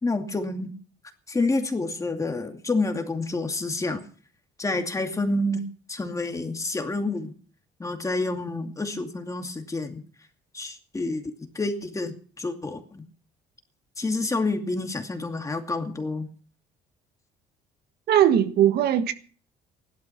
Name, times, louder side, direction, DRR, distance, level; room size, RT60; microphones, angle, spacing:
voice 1, 0.0-0.7 1.3-4.0 4.6-5.6 5.9-7.3 7.8-10.0 10.5-11.2 11.5-13.0 14.0-16.3, left 2 dB, 20° left, 2.5 m, -28 dB
voice 2, 18.1-19.1, right 10 dB, 70° right, 1.5 m, -19 dB
16.0 x 12.0 x 5.9 m
cardioid pair, 110°, 17 cm